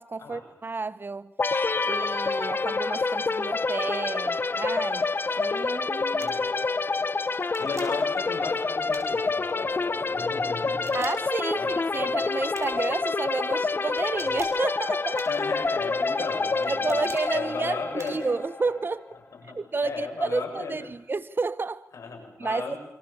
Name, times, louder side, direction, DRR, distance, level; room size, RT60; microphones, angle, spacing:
voice 1, 0.0-1.3 1.8-5.1 5.4-6.4 10.9-15.3 16.1-16.3 16.7-19.1 19.4-21.9 22.4-22.7, right 3 dB, 40° right, 1.2 m, -31 dB
sound 1, 1.4-19.0, left 4 dB, 40° left, 1.0 m, -27 dB
sound 2, 6.2-6.5 7.4-8.1 8.9-9.5 10.7-11.4 12.5-12.9 14.0-14.7 15.2-15.7 16.6-17.3 18.0-18.4, right 4 dB, 65° right, 6.2 m, -46 dB
voice 2, 7.6-11.0 11.5-11.7 12.0-12.1 15.3-17.0 17.3-18.3 19.3-20.9 21.9-22.8, left 4 dB, 75° left, 7.6 m, -35 dB
28.0 x 25.0 x 7.2 m
cardioid pair, 60°, 5 cm